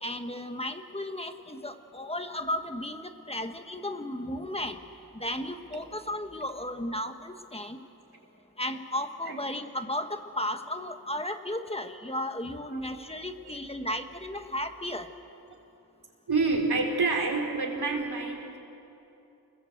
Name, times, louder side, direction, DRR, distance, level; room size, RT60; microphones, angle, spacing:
voice 1, 0.0-4.8 5.1-7.8 8.6-15.1, left 1 dB, 15° left, 7 dB, 1.4 m, -34 dB
voice 2, 16.3-18.6, right 3 dB, 75° right, 1 dB, 4.2 m, -27 dB
29.5 x 21.0 x 8.0 m, 2.9 s
wide cardioid pair, 85°, 38 cm